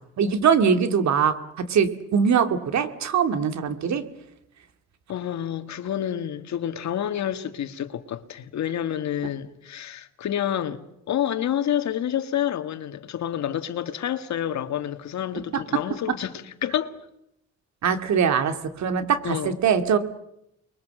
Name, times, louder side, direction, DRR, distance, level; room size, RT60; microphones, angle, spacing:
voice 1, 0.2-4.0 15.5-15.6 17.8-20.0, right 7 dB, 65° right, 2.3 m, -22 dB
voice 2, 5.1-10.8 11.1-16.9 19.2-19.6, left 10 dB, 65° left, 1.8 m, -28 dB
29.5 x 22.0 x 7.7 m
cardioid pair, 90°, 30 cm